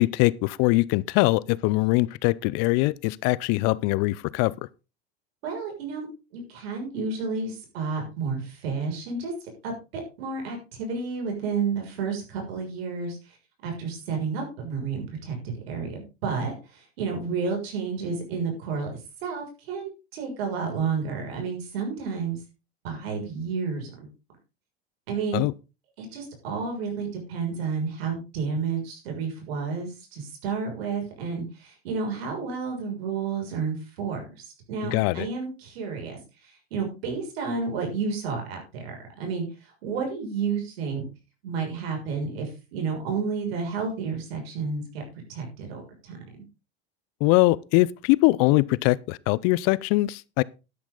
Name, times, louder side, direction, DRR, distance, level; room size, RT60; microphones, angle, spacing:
voice 1, 0.0-4.5 25.3-25.5 34.8-35.3 47.2-50.4, left 21 dB, 55° left, 0.7 m, -22 dB
voice 2, 5.4-6.1 6.3-9.3 9.6-13.4 13.6-22.4 22.8-24.1 25.1-25.4 26.0-41.1 41.4-45.0 45.3-46.2, right 5 dB, 75° right, 6.6 m, -31 dB
12.0 x 10.5 x 4.0 m
hypercardioid pair, 95°, 31 cm